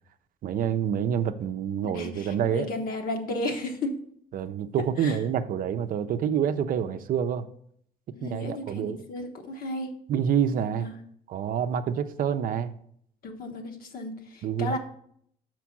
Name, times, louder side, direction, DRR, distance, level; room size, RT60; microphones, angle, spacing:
voice 1, 0.4-2.7 4.3-7.5 8.2-9.0 10.1-10.9 11.3-12.7 14.4-14.8, right 8 dB, 55° right, 10 dB, 0.5 m, -27 dB
voice 2, 1.9-3.9 5.0-5.2 8.1-9.9 10.8-11.0 13.2-14.8, left 2 dB, 60° left, 4 dB, 1.2 m, -34 dB
6.0 x 4.5 x 5.9 m, 0.66 s
cardioid pair, 110°, 17 cm